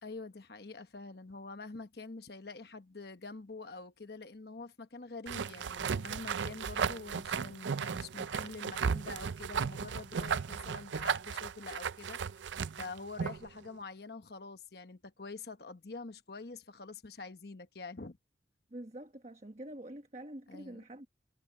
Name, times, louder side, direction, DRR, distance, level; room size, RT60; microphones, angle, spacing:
voice 1, 0.0-18.2 20.5-20.8, left 3 dB, 60° left, 1.1 m, -46 dB
sound 1, 5.3-13.5, right 6 dB, 80° right, 0.5 m, -35 dB
voice 2, 18.7-21.1, right 1 dB, 35° right, 1.3 m, -46 dB
head